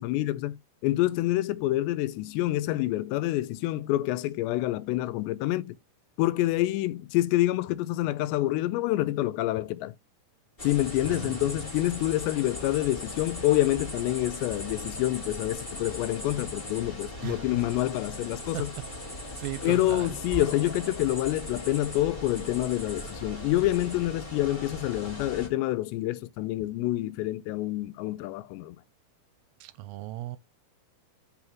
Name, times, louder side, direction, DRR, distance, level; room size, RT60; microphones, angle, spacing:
voice 1, 0.0-5.8 6.2-10.0 10.6-18.7 19.6-28.8, left 16 dB, 90° left, 2.8 m, -27 dB
sound 1, 10.6-25.5, left 1 dB, 20° left, 1.4 m, -39 dB
voice 2, 11.0-11.4 17.2-17.4 18.5-18.6 19.4-20.1 29.6-30.4, right 16 dB, 85° right, 2.6 m, -36 dB
5.5 x 4.8 x 6.0 m
omnidirectional pair, 4.9 m